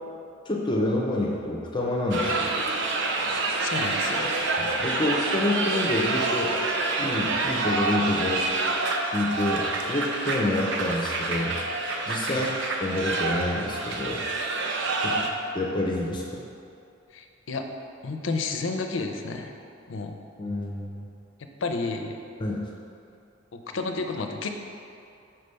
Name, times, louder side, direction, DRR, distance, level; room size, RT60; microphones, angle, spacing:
voice 1, 0.5-2.5 4.6-6.5 7.0-8.4 9.1-12.5 12.8-14.3 15.0-15.2 15.5-16.4 20.4-21.1 22.4-22.6, left 1 dB, 25° left, -2 dB, 0.5 m, -28 dB
sound 1, 2.1-15.3, right 3 dB, 65° right, 0.5 m, -27 dB
voice 2, 3.6-4.3 12.2-12.5 15.0-15.3 17.1-17.6 18.0-19.5 19.9-20.2 21.6-22.1 23.5-24.5, left 3 dB, 70° left, 5 dB, 0.5 m, -31 dB
5.8 x 3.3 x 5.3 m, 2.6 s
head